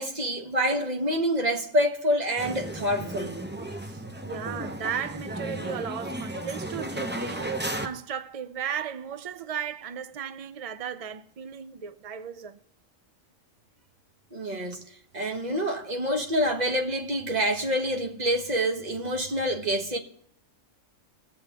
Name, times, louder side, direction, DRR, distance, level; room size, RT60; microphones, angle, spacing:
voice 1, 0.0-3.4 14.3-14.8 15.1-20.0, equal, 35° right, 1.3 m, -27 dB
sound 1, 2.4-7.9, right 1 dB, 10° right, 0.6 m, -34 dB
voice 2, 3.8-12.6, right 8 dB, 70° right, 0.3 m, -36 dB
21.5 x 7.9 x 3.4 m
omnidirectional pair, 1.3 m